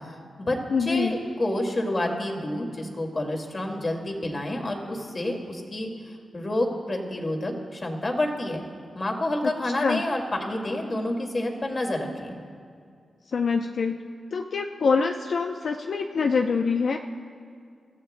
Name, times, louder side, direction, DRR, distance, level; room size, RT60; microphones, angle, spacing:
voice 1, 0.1-5.9 6.3-8.6 8.9-12.4, left 1 dB, 35° left, 2 dB, 2.2 m, -29 dB
voice 2, 0.7-1.2 9.4-9.5 9.8-10.0 13.3-14.0 14.3-17.0, left 5 dB, 65° left, 3 dB, 0.6 m, -25 dB
28.0 x 14.5 x 2.2 m, 2.2 s
cardioid pair, 70°, 0 cm